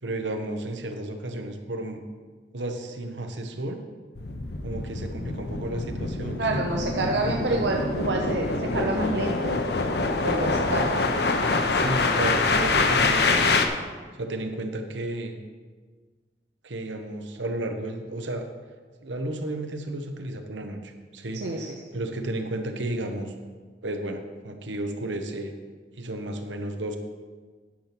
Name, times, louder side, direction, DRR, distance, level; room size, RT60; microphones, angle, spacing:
voice 1, 0.0-2.0 2.5-3.8 4.6-6.7 11.7-13.7 14.1-15.3 16.6-18.5 19.0-23.3 23.8-25.5 26.0-27.0, right 1 dB, 85° right, 5 dB, 1.1 m, -33 dB
sound 1, 4.2-13.7, left 3 dB, 65° left, 0.8 m, -25 dB
voice 2, 6.4-9.6 10.2-11.0 21.4-21.7, right 2 dB, 70° right, 1 dB, 0.7 m, -27 dB
10.0 x 5.9 x 6.0 m, 1.5 s
head